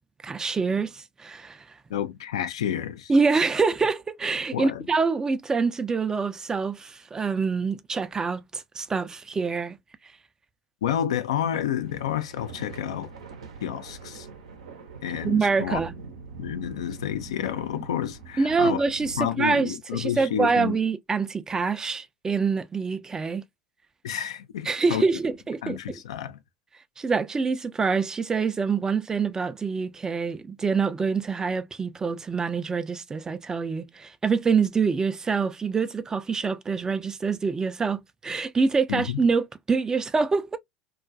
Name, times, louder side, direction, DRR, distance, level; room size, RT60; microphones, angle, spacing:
voice 1, 0.2-1.6 3.1-9.8 15.2-15.9 18.4-23.4 24.7-26.0 27.0-40.6, right 4 dB, 20° right, 0.3 m, -25 dB
voice 2, 1.9-3.1 4.5-4.9 10.8-13.1 13.6-14.3 15.0-15.8 16.4-18.8 19.2-20.8 24.0-25.0 25.6-26.4 38.9-39.2, left 10 dB, 80° left, 0.3 m, -30 dB
sound 1, 11.8-19.2, right 4 dB, 85° right, 0.6 m, -43 dB
2.3 x 2.2 x 2.4 m
hypercardioid pair, 80°, 3 cm